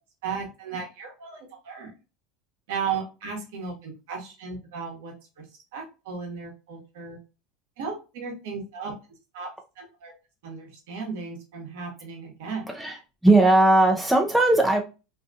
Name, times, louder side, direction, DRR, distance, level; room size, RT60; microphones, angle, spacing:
voice 1, 0.2-1.9 2.7-5.4 5.7-7.2 7.8-8.9 9.3-9.5 9.8-10.1 10.4-12.7, right 5 dB, 75° right, 1 dB, 1.0 m, -35 dB
voice 2, 12.7-13.0 13.2-14.8, right 2 dB, 5° right, 2 dB, 0.6 m, -18 dB
2.7 x 2.3 x 2.4 m, 0.30 s
hypercardioid pair, 85°, 0 cm